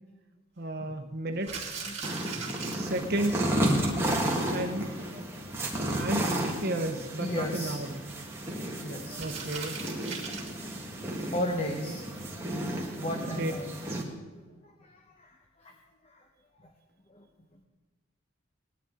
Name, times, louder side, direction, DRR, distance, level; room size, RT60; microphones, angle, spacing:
voice 1, 0.6-1.8 2.7-3.6 4.5-4.9 5.9-7.9 9.2-9.8 11.6-11.9 13.3-13.5, right 1 dB, 50° right, 6 dB, 1.0 m, -33 dB
sound 1, 1.3-3.5 3.8-3.9 4.1-4.2 4.5-4.6 5.0-5.3 7.3-8.5 9.1-10.6, right 5 dB, 30° right, 2.5 m, -40 dB
voice 2, 1.8-2.6 7.2-7.8 8.8-9.3 11.0-12.1 13.0-13.7 14.3-15.7 16.0-16.3 16.6-16.7 17.1-17.3, left 1 dB, 30° left, 2 dB, 0.9 m, -36 dB
sound 2, 2.0-14.0, right 1 dB, 10° right, 1.5 m, -32 dB
19.0 x 11.0 x 3.7 m, 1.3 s
head